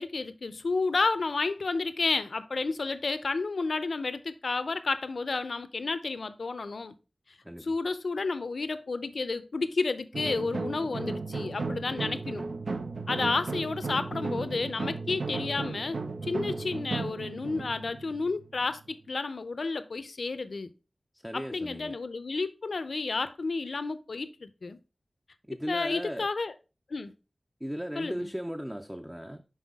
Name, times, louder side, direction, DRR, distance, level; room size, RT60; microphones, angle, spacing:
voice 1, 0.0-6.9 7.6-12.4 13.1-20.7 21.3-24.8 25.7-26.5 26.9-27.1 28.0-28.2, left 3 dB, 70° left, 0.5 m, -31 dB
voice 2, 7.4-7.7 21.2-22.0 25.4-26.3 27.6-29.4, equal, 10° right, 0.4 m, -37 dB
sound 1, 10.1-18.9, right 3 dB, 80° right, 0.5 m, -35 dB
5.6 x 5.6 x 3.5 m
wide cardioid pair, 85°, 0 cm